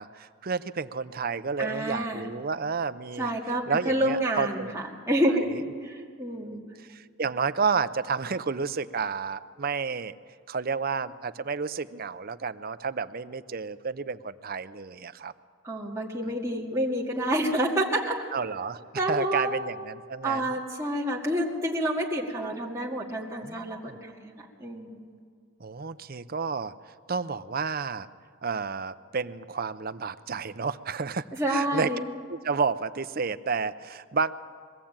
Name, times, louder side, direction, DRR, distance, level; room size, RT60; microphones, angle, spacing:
voice 1, 0.0-3.3 3.7-4.7 5.3-5.4 6.8-10.1 10.5-15.3 16.3-16.4 18.3-18.8 19.1-20.5 23.4-24.0 25.6-28.1 28.4-31.9 32.3-34.3, right 5 dB, 40° right, 12 dB, 0.6 m, -31 dB
voice 2, 1.6-2.3 3.2-6.6 15.6-18.1 19.0-19.5 20.2-25.1 31.3-32.0, right 1 dB, 15° right, -4 dB, 2.2 m, -28 dB
22.5 x 15.0 x 8.9 m, 2.2 s
head